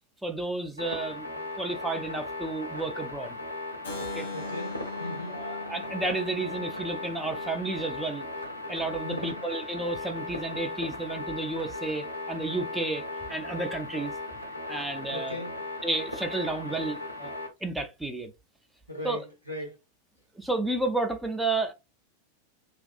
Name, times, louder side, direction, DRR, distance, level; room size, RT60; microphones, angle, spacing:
voice 1, 0.2-3.4 4.1-4.3 5.3-8.2 8.7-14.1 14.7-15.4 15.8-18.3 19.0-19.2 20.3-21.7, right 2 dB, 5° right, 0.4 m, -32 dB
sound 1, 0.8-17.5, left 2 dB, 90° right, 0.5 m, -37 dB
Keyboard (musical), 3.8-9.7, left 3 dB, 65° left, 0.9 m, -43 dB
voice 2, 4.3-5.5 9.0-9.5 15.1-15.6 18.9-19.7, left 1 dB, 85° left, 1.0 m, -38 dB
2.6 x 2.3 x 2.3 m
figure-of-eight pair, 90°, 0 cm